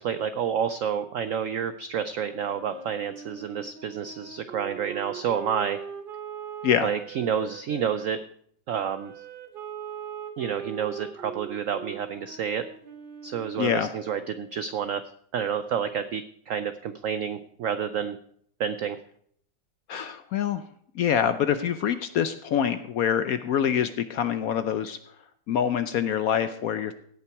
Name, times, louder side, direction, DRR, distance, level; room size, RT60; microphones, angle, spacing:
voice 1, 0.0-5.8 6.8-8.2 8.7-9.1 10.4-12.6 13.2-15.0 15.3-18.2 18.6-19.0, right 8 dB, 85° right, 11 dB, 0.7 m, -29 dB
Wind instrument woodwind instrument, 2.2-8.1 8.7-14.6, right 7 dB, 40° right, 0.8 m, -41 dB
voice 2, 13.6-13.9 19.9-20.6 20.9-25.0 25.5-26.9, left 8 dB, 70° left, 11 dB, 0.9 m, -25 dB
17.0 x 5.8 x 4.6 m, 0.65 s
omnidirectional pair, 2.0 m